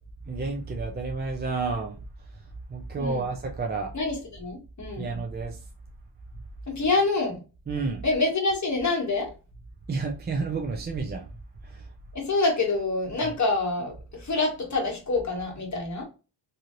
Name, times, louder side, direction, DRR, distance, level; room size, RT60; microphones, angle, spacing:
voice 1, 0.3-2.0 2.7-3.9 5.0-5.6 7.7-8.0 9.9-11.3 11.6-11.8 13.2-13.3, right 4 dB, 25° right, 0.4 m, -30 dB
voice 2, 3.9-5.0 6.7-7.4 8.0-9.3 12.1-16.0, left 3 dB, 40° left, 1.3 m, -26 dB
3.0 x 2.7 x 2.5 m
cardioid pair, 90°, 46 cm